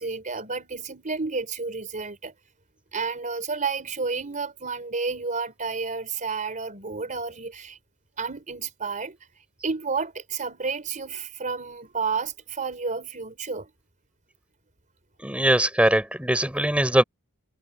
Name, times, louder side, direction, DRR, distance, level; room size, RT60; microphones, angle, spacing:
voice 1, 0.0-2.3 2.9-7.8 8.2-9.2 9.6-13.7, right 4 dB, 35° right, 4.1 m, -31 dB
voice 2, 15.2-17.0, right 1 dB, 5° right, 6.1 m, -21 dB
head